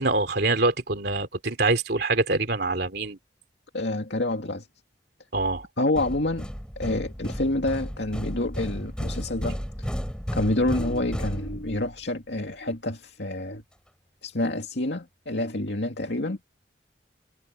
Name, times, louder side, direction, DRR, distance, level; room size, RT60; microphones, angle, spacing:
voice 1, 0.0-3.2 5.3-5.7, right 3 dB, 60° right, 3.1 m, -25 dB
voice 2, 3.7-4.7 5.8-6.5 6.8-9.9 10.3-13.6 14.2-16.4, left 1 dB, 70° left, 2.4 m, -28 dB
sound 1, 6.0-12.0, equal, 5° left, 3.4 m, -33 dB
head